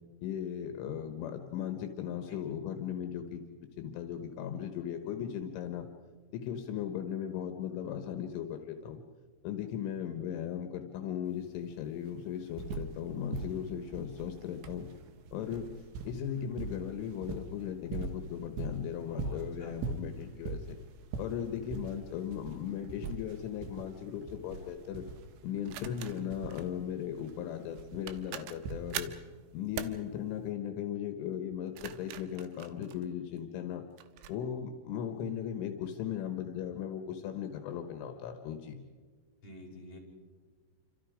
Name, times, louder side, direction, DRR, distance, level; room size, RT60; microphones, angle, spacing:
voice 1, 0.2-3.4 3.8-5.9 6.3-9.0 9.4-14.9 15.3-15.7 16.1-20.8 21.2-25.0 25.4-29.1 29.5-33.8 34.3-38.8, left 9 dB, 80° left, 6 dB, 3.7 m, -37 dB
sound 1, 11.3-11.4 11.6-13.0 13.3-29.3 30.3-30.4, right 4 dB, 70° right, 3.5 m, -42 dB
voice 2, 19.1-19.8 39.4-40.0, left 2 dB, 30° left, -2 dB, 6.5 m, -47 dB
sound 2, 23.3-23.5 25.7-26.7 27.7-27.8 28.1-29.2 29.8-30.0 31.5-33.4 34.0-34.4, right 12 dB, 85° right, 3.6 m, -43 dB
29.0 x 26.5 x 5.0 m, 1.5 s
omnidirectional pair, 5.6 m